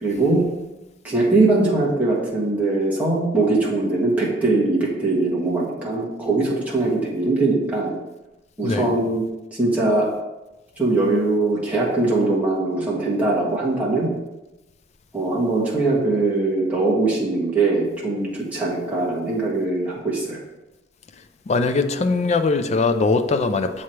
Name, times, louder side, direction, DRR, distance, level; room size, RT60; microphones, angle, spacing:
voice 1, 0.0-0.4 1.0-7.9 8.6-9.2 9.6-10.1 10.8-14.1 15.1-20.4, right 2 dB, 10° right, -7 dB, 1.6 m, -21 dB
voice 2, 21.5-23.8, left 3 dB, 35° left, 8 dB, 0.4 m, -21 dB
7.1 x 3.2 x 4.4 m, 1.0 s
head